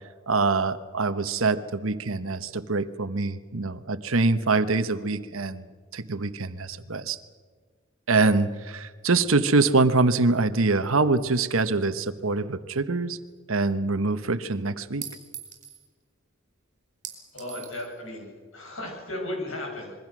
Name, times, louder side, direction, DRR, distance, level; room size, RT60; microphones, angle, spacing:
voice 1, 0.3-5.7 5.9-7.2 8.1-13.2 13.5-15.1, right 3 dB, 70° right, 12 dB, 1.1 m, -24 dB
Chink clink, 13.3-13.4 15.0-15.8 17.0-17.9, right 9 dB, 40° right, 4.8 m, -41 dB
voice 2, 17.3-19.9, left 1 dB, 65° left, 2 dB, 7.7 m, -35 dB
26.5 x 22.0 x 6.2 m, 1.5 s
head